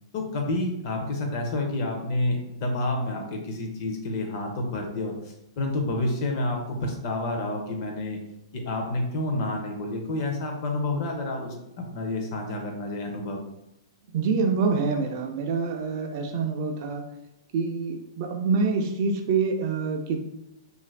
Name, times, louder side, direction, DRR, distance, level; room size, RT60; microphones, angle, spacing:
voice 1, 0.1-8.2 8.5-13.4, left 2 dB, 35° left, 2 dB, 0.5 m, -29 dB
voice 2, 14.1-17.0 17.5-20.2, right 4 dB, 35° right, 3 dB, 0.3 m, -26 dB
2.7 x 2.4 x 3.2 m, 0.88 s
hypercardioid pair, 175°, 3 cm